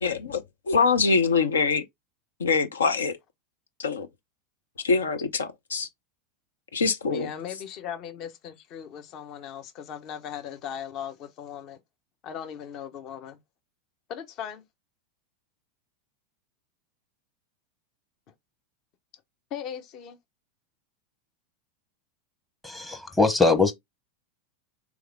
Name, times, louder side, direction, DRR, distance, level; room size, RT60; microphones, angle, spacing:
voice 1, 0.0-1.8 2.4-3.2 3.8-4.1 4.8-5.9 6.7-7.3, left 4 dB, 75° left, 0.7 m, -24 dB
voice 2, 7.1-11.8 12.2-13.4 14.1-14.6 19.5-20.2, left 8 dB, 45° left, 0.9 m, -38 dB
voice 3, 22.6-23.7, left 3 dB, 10° left, 0.9 m, -22 dB
3.5 x 3.5 x 3.4 m
figure-of-eight pair, 85°, 0 cm